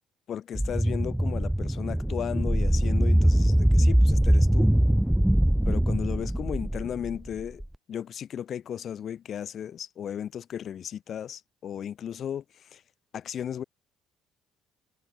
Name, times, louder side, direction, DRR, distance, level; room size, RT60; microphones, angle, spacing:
voice 1, 0.3-4.7 5.6-7.6 7.9-12.8 13.1-13.6, left 9 dB, 50° left, 1.0 m, -35 dB
sound 1, 0.5-7.7, right 1 dB, 5° right, 0.3 m, -22 dB
figure-of-eight pair, 50°, 0 cm